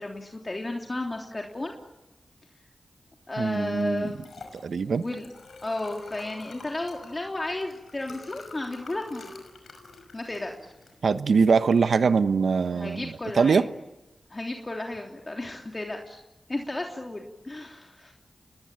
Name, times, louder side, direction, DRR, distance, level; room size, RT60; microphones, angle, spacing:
voice 1, 0.0-1.8 3.3-4.2 4.9-5.3 5.6-9.3 10.1-10.7 12.7-13.6 14.3-16.2 16.5-18.1, left 2 dB, 35° left, 1 dB, 3.3 m, -33 dB
voice 2, 3.4-4.1 4.6-5.0 11.0-13.6, right 5 dB, 80° right, 12 dB, 1.1 m, -22 dB
Liquid, 3.5-13.6, left 3 dB, 80° left, 5.6 m, -48 dB
27.0 x 21.0 x 9.0 m, 1.0 s
cardioid pair, 40°, 0 cm